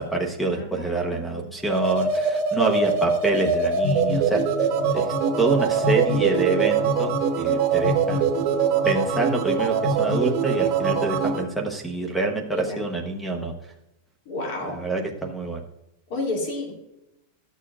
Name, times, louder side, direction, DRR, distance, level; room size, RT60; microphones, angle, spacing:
voice 1, 0.0-4.4 4.9-8.3 8.8-13.5 14.6-15.6, right 2 dB, ahead, 3 dB, 0.9 m, -26 dB
voice 2, 0.5-1.5 12.5-12.8 14.3-14.8 16.1-16.7, left 2 dB, 45° left, 0 dB, 2.4 m, -31 dB
sound 1, 1.6-11.4, right 5 dB, 40° right, 1.1 m, -23 dB
13.0 x 6.7 x 2.4 m, 0.90 s
supercardioid pair, 175°, 0 cm